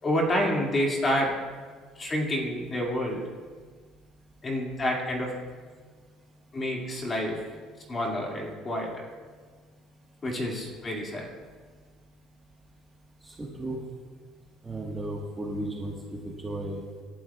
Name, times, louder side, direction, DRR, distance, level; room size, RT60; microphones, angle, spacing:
voice 1, 0.0-1.3 2.0-3.3 4.4-5.3 6.5-7.4 7.9-8.9 10.2-11.3, left 1 dB, 20° left, -1 dB, 2.2 m, -28 dB
voice 2, 13.2-13.8 14.6-15.9 16.2-16.8, right 1 dB, 10° right, -3 dB, 1.4 m, -34 dB
27.0 x 11.5 x 2.4 m, 1.5 s
cardioid pair, 175°, 0 cm